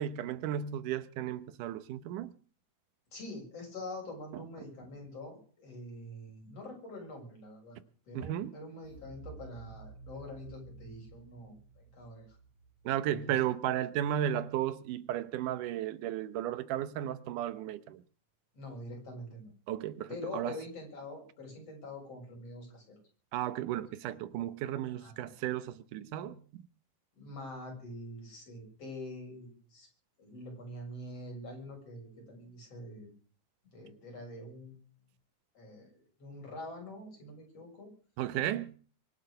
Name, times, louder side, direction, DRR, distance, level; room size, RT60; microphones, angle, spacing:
voice 1, 0.0-2.3 4.3-4.4 8.1-8.5 12.8-18.0 19.7-20.6 23.3-26.4 38.2-38.7, right 11 dB, 85° right, 2.5 m, -34 dB
voice 2, 3.1-7.8 8.1-12.4 13.1-13.3 18.5-19.5 20.1-23.0 25.0-25.1 27.2-29.9 30.2-33.1 33.7-34.8 35.5-37.9, left 1 dB, 50° left, 8.0 m, -45 dB
sound 1, 8.8-13.7, right 4 dB, 85° left, 5.9 m, -52 dB
24.5 x 8.4 x 6.6 m
omnidirectional pair, 3.6 m